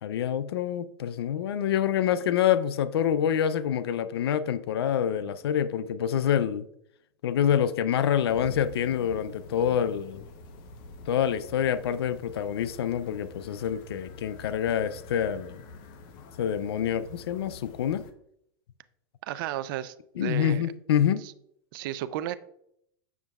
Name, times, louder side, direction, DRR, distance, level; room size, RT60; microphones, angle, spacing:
voice 1, 0.0-6.7 7.2-10.2 11.1-15.6 16.4-18.0 20.2-21.2, left 9 dB, 90° left, 0.4 m, -26 dB
sound 1, 8.3-18.1, left 3 dB, 55° left, 0.8 m, -46 dB
voice 2, 19.3-20.6 21.2-21.3 21.7-22.3, right 13 dB, 60° right, 0.5 m, -33 dB
7.1 x 6.2 x 2.3 m
supercardioid pair, 130°, 13 cm